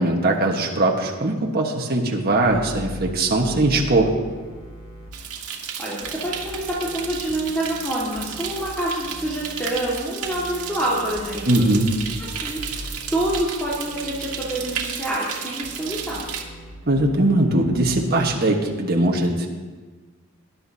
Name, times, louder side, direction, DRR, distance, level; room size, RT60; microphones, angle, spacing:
voice 1, 0.0-4.1 11.5-11.9 16.9-19.5, right 2 dB, 45° right, 0 dB, 1.4 m, -20 dB
sound 1, 2.4-5.1 6.0-8.7 9.0-9.7 10.2-13.4 13.7-14.8 15.6-18.1, left 1 dB, 60° left, 2.8 m, -40 dB
sound 2, 5.1-16.4, right 7 dB, 85° right, 1.5 m, -33 dB
voice 2, 5.8-11.5 12.2-16.3, right 1 dB, 5° left, -8 dB, 1.9 m, -27 dB
19.5 x 11.0 x 2.8 m, 1.3 s
head